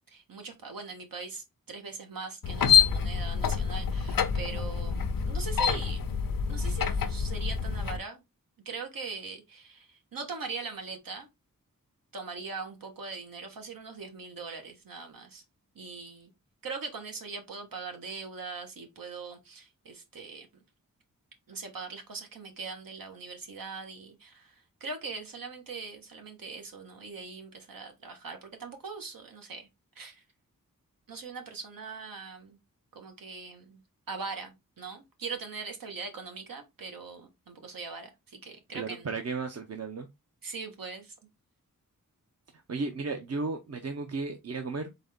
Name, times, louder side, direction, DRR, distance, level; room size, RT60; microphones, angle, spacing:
voice 1, 0.1-6.0 6.5-8.2 8.6-11.3 12.1-15.4 15.7-16.3 16.6-20.5 21.5-29.7 29.9-30.2 31.1-32.6 32.9-33.8 34.1-39.1 40.4-41.1, right 4 dB, 90° right, 1.3 m, -41 dB
sound 1, 2.4-8.0, left 7 dB, 90° left, 0.7 m, -27 dB
voice 2, 38.7-40.1 42.7-45.0, right 4 dB, 50° right, 0.6 m, -34 dB
4.0 x 3.8 x 3.5 m
wide cardioid pair, 120°, 33 cm